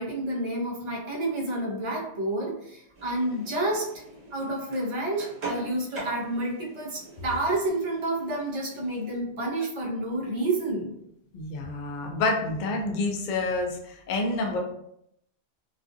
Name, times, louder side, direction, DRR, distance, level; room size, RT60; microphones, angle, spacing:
voice 1, 0.0-3.9 4.3-10.9, right 1 dB, 35° right, -4 dB, 0.6 m, -29 dB
sound 1, 2.9-9.2, right 2 dB, 75° right, 1.0 m, -43 dB
voice 2, 11.3-14.6, left 2 dB, 55° left, 2 dB, 0.5 m, -28 dB
2.3 x 2.3 x 2.5 m, 0.75 s
omnidirectional pair, 1.2 m